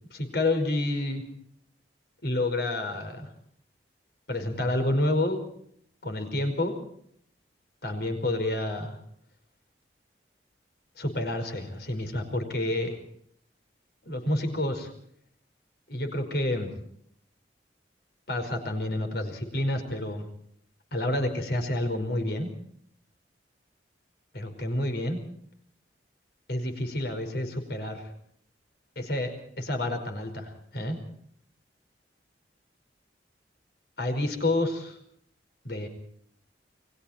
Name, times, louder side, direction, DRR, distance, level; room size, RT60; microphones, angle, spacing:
voice 1, 0.1-1.2 2.2-3.3 4.3-5.4 6.0-6.8 7.8-9.0 11.0-13.0 14.0-14.9 15.9-16.7 18.3-20.2 20.9-22.5 24.3-25.2 26.5-28.1 28.9-31.0 34.0-35.0 35.6-35.9, left 1 dB, 60° left, 6 dB, 5.2 m, -29 dB
29.5 x 21.5 x 4.4 m, 0.67 s
head